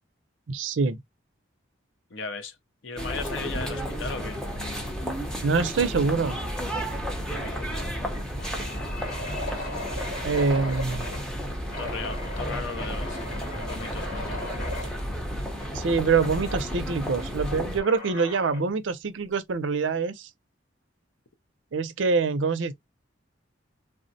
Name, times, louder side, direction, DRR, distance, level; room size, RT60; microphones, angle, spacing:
voice 1, 0.5-1.0 5.4-6.4 10.2-11.1 15.7-20.3 21.7-22.7, right 4 dB, 75° right, 0.5 m, -25 dB
voice 2, 2.1-2.6 2.8-4.4 7.3-7.7 11.8-15.0, left 4 dB, 80° left, 0.6 m, -37 dB
sound 1, 3.0-17.8, equal, 5° left, 0.6 m, -32 dB
sound 2, 6.8-7.0 7.3-7.4 8.0-11.3 11.7-14.9 16.2-16.6 17.8-18.7, left 1 dB, 45° left, 2.5 m, -38 dB
3.5 x 2.0 x 2.6 m
head